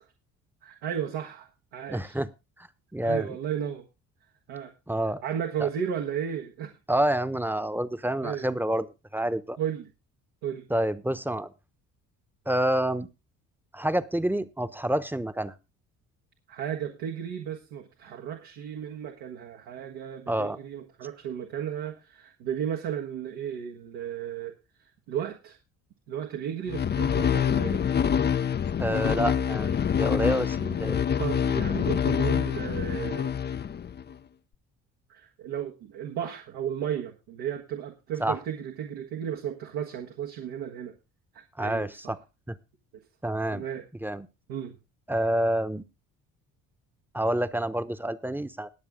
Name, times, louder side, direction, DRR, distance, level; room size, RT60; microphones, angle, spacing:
voice 1, 0.6-2.2 3.0-3.8 4.5-4.7 5.2-6.7 8.2-8.5 9.6-9.9 10.4-10.7 16.5-24.5 24.8-25.6 26.1-27.9 30.6-30.8 31.2-33.3 35.1-40.9 41.3-42.1 43.5-43.8 44.5-44.8, right 9 dB, 75° right, 2 dB, 1.6 m, -34 dB
voice 2, 1.9-2.3 2.6-2.7 2.9-3.4 4.9-5.2 5.6-5.7 6.9-8.9 9.1-9.6 10.7-11.5 12.5-13.1 13.7-15.5 20.3-20.6 28.8-31.0 38.2-38.4 41.6-42.2 42.5-42.6 43.2-43.6 44.0-44.3 45.1-45.8 47.1-48.7, right 1 dB, 5° right, 13 dB, 1.0 m, -28 dB
sound 1, 26.7-34.1, left 8 dB, 25° left, 0.5 m, -26 dB
20.5 x 7.2 x 3.7 m, 0.28 s
hypercardioid pair, 60°, 39 cm